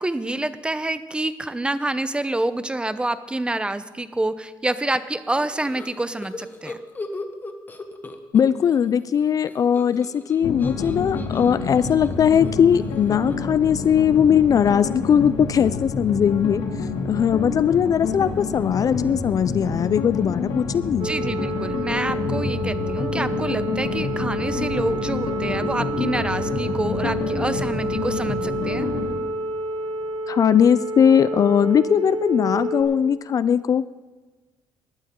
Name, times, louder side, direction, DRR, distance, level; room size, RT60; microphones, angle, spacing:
voice 1, 0.0-6.8 21.0-28.9, right 2 dB, 10° right, 13 dB, 0.7 m, -27 dB
sound 1, 5.4-8.8 9.1-13.6, left 3 dB, 20° left, 1.3 m, -39 dB
voice 2, 8.3-16.6 17.0-21.1 30.3-33.8, left 8 dB, 45° left, 16 dB, 0.4 m, -19 dB
sound 2, 10.4-29.1, left 4 dB, 75° left, 2.5 m, -28 dB
sound 3, 21.0-32.8, right 1 dB, 60° right, 3.4 m, -29 dB
19.5 x 12.5 x 3.8 m, 1.3 s
cardioid pair, 110°, 8 cm